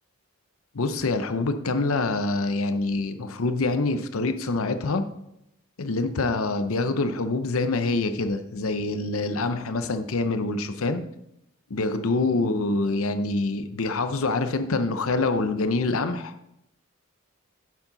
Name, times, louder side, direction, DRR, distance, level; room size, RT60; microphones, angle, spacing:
voice 1, 0.7-5.0 5.8-11.0 11.7-16.3, left 3 dB, 75° left, 9 dB, 0.7 m, -25 dB
9.6 x 7.3 x 3.9 m, 0.80 s
head